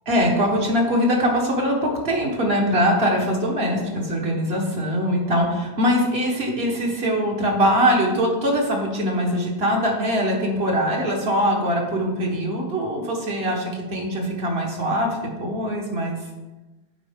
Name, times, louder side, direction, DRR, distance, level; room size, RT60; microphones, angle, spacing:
voice 1, 0.1-16.2, equal, 60° right, 0 dB, 1.6 m, -22 dB
8.3 x 4.5 x 3.6 m, 1.1 s
omnidirectional pair, 1.2 m